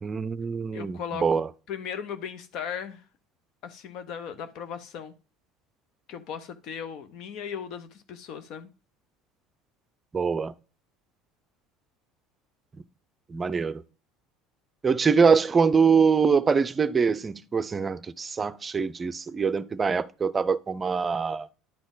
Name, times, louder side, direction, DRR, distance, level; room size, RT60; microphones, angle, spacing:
voice 1, 0.0-1.5 10.1-10.5 13.3-13.8 14.8-21.5, right 5 dB, 25° right, 0.5 m, -24 dB
voice 2, 0.7-3.0 3.6-5.1 6.1-8.7, left 7 dB, 60° left, 1.0 m, -37 dB
10.0 x 4.1 x 3.9 m
hypercardioid pair, 80°, 0 cm